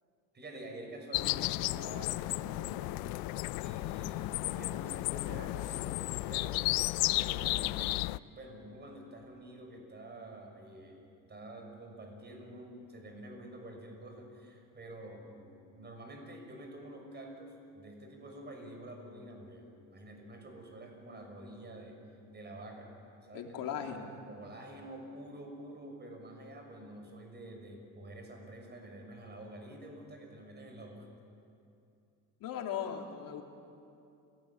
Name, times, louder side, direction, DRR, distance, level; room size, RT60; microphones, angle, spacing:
voice 1, 0.3-3.2 3.6-6.6 7.2-8.0 8.3-11.0 11.3-22.0 22.3-22.9 23.2-31.1, right 1 dB, 30° right, 3 dB, 6.1 m, -48 dB
sound 1, 1.1-8.2, left 21 dB, 85° left, 0.5 m, -33 dB
voice 2, 23.3-24.1 32.4-33.4, left 8 dB, 70° left, 3 dB, 2.9 m, -38 dB
29.0 x 17.5 x 8.6 m, 2.6 s
cardioid pair, 115°, 35 cm